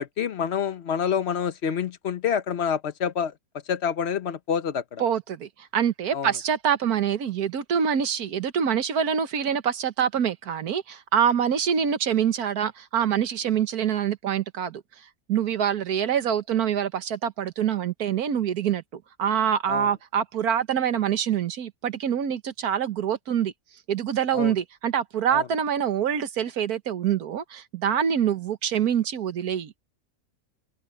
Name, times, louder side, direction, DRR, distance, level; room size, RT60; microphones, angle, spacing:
voice 1, 0.0-3.3 3.7-5.0 6.1-6.3 19.7-19.9 24.3-24.5 25.3-25.5, left 7 dB, 50° left, 1.1 m, -27 dB
voice 2, 5.0-14.8 15.3-23.5 23.9-29.7, right 8 dB, 90° right, 1.6 m, -25 dB
open air
omnidirectional pair, 1.5 m